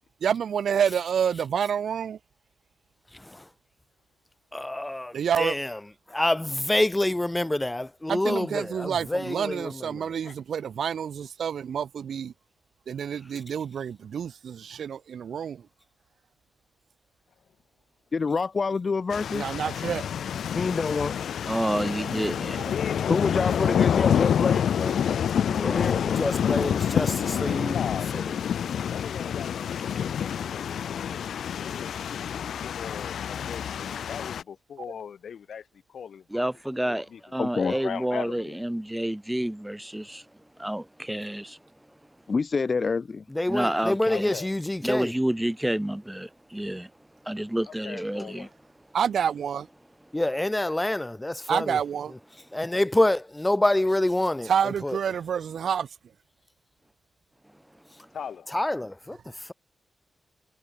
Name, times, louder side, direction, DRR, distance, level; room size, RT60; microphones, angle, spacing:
voice 1, 0.2-2.2 5.1-5.6 8.1-12.3 12.9-15.6 19.3-20.1 48.9-49.7 51.5-52.1 54.5-55.9, right 8 dB, 80° right, 1.0 m, -28 dB
voice 2, 3.1-3.5 4.5-5.8 6.1-10.2 25.5-27.8 28.1-28.3 43.3-45.1 50.1-51.8 52.5-55.0 58.5-59.2, left 1 dB, 10° left, 3.9 m, -27 dB
voice 3, 18.1-19.5 20.5-21.1 23.1-25.2 25.6-26.3 37.4-37.7 42.3-43.2, left 4 dB, 40° left, 0.9 m, -27 dB
sound 1, 19.1-34.4, left 8 dB, 90° left, 1.7 m, -27 dB
voice 4, 21.5-22.6 36.3-40.2 40.6-41.6 43.5-44.3 44.8-46.9 47.2-48.5, right 1 dB, 5° right, 4.2 m, -29 dB
voice 5, 22.7-23.3 27.7-28.4 28.9-36.4 36.9-37.2 37.6-38.6 44.1-44.5 47.7-48.5 58.1-58.5, left 7 dB, 70° left, 4.5 m, -39 dB
wide cardioid pair, 125°, 0 cm